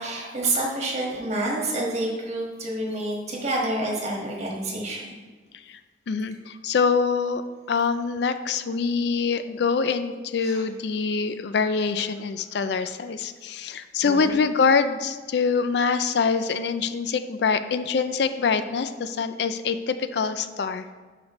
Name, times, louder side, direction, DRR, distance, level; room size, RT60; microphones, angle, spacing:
voice 1, 0.0-5.1 10.4-10.6 14.0-14.3, right 2 dB, 35° right, -2 dB, 1.6 m, -28 dB
voice 2, 6.1-7.4 7.7-20.9, left 5 dB, 65° left, 11 dB, 0.4 m, -25 dB
11.5 x 4.9 x 3.1 m, 1.5 s
head